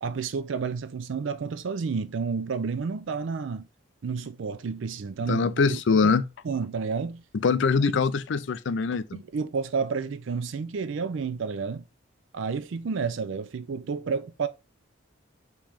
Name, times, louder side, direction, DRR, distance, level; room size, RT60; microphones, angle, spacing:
voice 1, 0.0-3.6 4.0-6.1 6.4-7.2 9.1-11.8 12.3-14.5, right 5 dB, 75° right, 0.4 m, -30 dB
voice 2, 5.3-6.2 7.3-9.2, left 5 dB, 65° left, 0.4 m, -23 dB
5.2 x 3.0 x 3.4 m
head